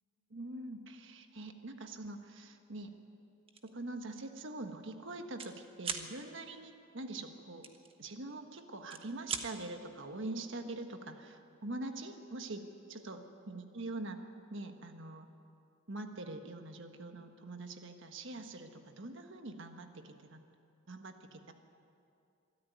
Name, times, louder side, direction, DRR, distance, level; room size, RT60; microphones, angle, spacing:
voice 1, 0.3-2.9 3.6-7.7 8.0-14.2 14.5-15.3 15.9-20.4 20.9-21.5, right 2 dB, 65° right, 6 dB, 1.4 m, -44 dB
sound 1, 3.5-3.7 4.2-4.4 4.6-5.5 5.8-6.1 7.6-8.4 8.8-9.5, right 5 dB, 25° right, 1.3 m, -40 dB
24.0 x 13.5 x 9.4 m, 2.6 s
head